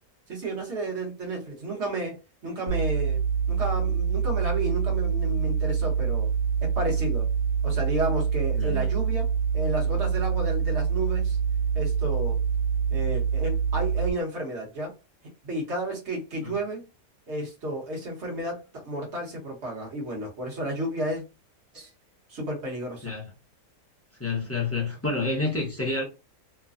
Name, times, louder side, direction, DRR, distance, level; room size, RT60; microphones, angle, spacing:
voice 1, 0.3-2.2 2.4-3.2 3.5-6.3 6.6-7.3 7.6-11.4 11.7-12.4 12.9-14.9 15.4-16.8 17.3-21.2 21.7-21.9 22.3-23.1, right 1 dB, 50° right, 1.3 m, -32 dB
sound 1, 2.7-14.1, right 6 dB, 55° left, 1.3 m, -25 dB
voice 2, 8.5-8.8 16.4-16.5 23.0-23.3 24.2-26.0, left 3 dB, 15° left, 0.7 m, -29 dB
3.1 x 2.2 x 2.5 m
omnidirectional pair, 1.6 m